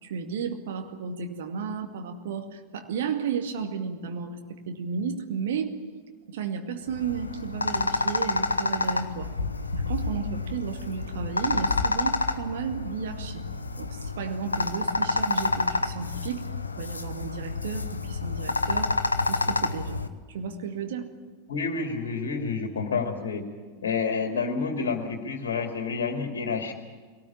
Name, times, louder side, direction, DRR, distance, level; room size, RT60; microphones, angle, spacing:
voice 1, 0.0-5.8 6.3-9.3 9.7-13.5 13.8-16.5 16.8-19.0 19.3-20.0 20.3-21.1, right 6 dB, 55° right, 5 dB, 2.3 m, -33 dB
sound 1, 6.9-20.1, left 3 dB, 80° left, 1.0 m, -29 dB
voice 2, 21.5-23.4 23.8-26.7, left 5 dB, 60° left, 4 dB, 2.4 m, -29 dB
22.0 x 18.5 x 8.7 m, 1.5 s
figure-of-eight pair, 90°, 0 cm